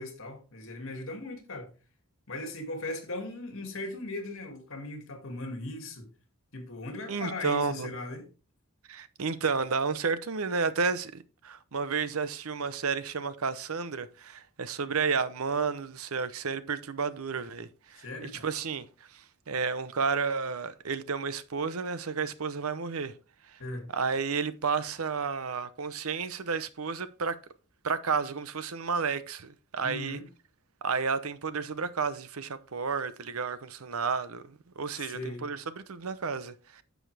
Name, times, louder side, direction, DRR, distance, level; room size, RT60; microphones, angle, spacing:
voice 1, 0.0-1.7 2.3-6.1 6.5-8.3 18.0-18.5 23.6-23.9 29.8-30.2 35.0-35.5, left 2 dB, 65° left, 2.4 m, -38 dB
voice 2, 7.1-7.9 8.9-18.9 19.1-23.1 23.5-23.6 23.9-27.4 27.8-30.2 30.8-36.8, right 5 dB, 80° right, 0.8 m, -31 dB
10.0 x 7.1 x 3.4 m
head